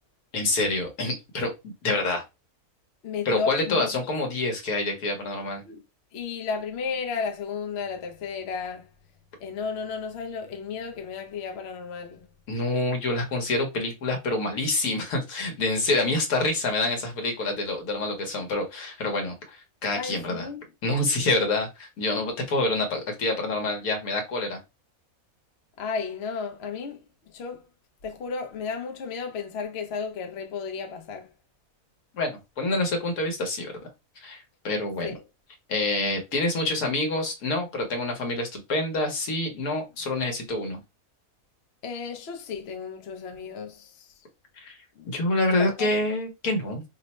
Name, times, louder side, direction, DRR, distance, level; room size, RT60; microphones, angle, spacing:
voice 1, 0.3-2.2 3.2-5.6 12.5-20.5 20.8-24.6 32.1-33.7 34.2-35.1 35.7-40.8 44.6-44.8 45.1-46.8, left 2 dB, 75° left, 1.4 m, -27 dB
voice 2, 3.0-4.0 5.6-5.8 6.1-8.9 9.4-12.3 20.0-20.6 25.8-27.6 28.0-31.3 35.0-35.2 41.8-44.1 45.0-45.1 45.6-45.9, left 5 dB, 55° left, 0.8 m, -33 dB
3.1 x 2.1 x 4.1 m
omnidirectional pair, 1.6 m